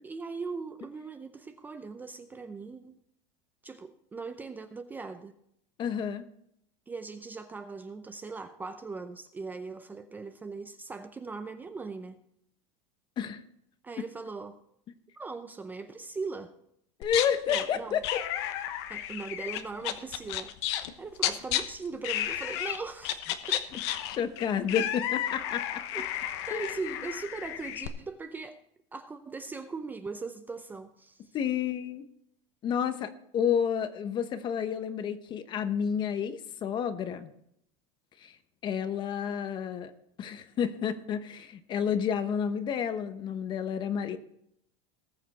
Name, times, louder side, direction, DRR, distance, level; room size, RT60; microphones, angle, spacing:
voice 1, 0.0-3.0 3.6-5.3 6.9-12.2 13.8-14.6 15.2-16.5 17.5-18.0 18.9-20.5 21.0-23.2 23.5-23.7 25.9-26.1 26.5-28.6 28.9-31.4, right 4 dB, 10° right, 8 dB, 0.6 m, -39 dB
voice 2, 5.8-6.2 13.2-13.4 17.0-18.0 24.1-25.6 26.5-26.7 31.3-32.0 32.6-37.3 38.2-38.3 38.6-39.9 40.2-44.2, left 8 dB, 30° left, 11 dB, 1.0 m, -30 dB
sound 1, 17.0-17.6 18.0-20.9 21.2-21.6 22.0-22.8 23.0-27.9, left 12 dB, 65° left, 1.1 m, -32 dB
19.0 x 6.8 x 4.2 m, 0.73 s
supercardioid pair, 150°, 15 cm